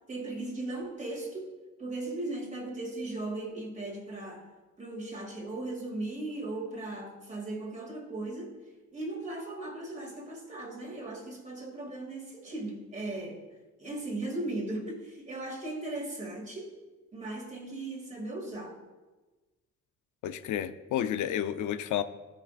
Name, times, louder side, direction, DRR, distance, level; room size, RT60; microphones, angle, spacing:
voice 1, 0.1-1.5 1.8-4.5 4.8-8.6 8.9-13.5 13.8-16.7 17.1-18.8, right 2 dB, 25° right, 2.2 m, -37 dB
voice 2, 20.2-22.0, left 10 dB, 80° left, 0.6 m, -31 dB
13.0 x 6.0 x 2.5 m
cardioid pair, 90°, 30 cm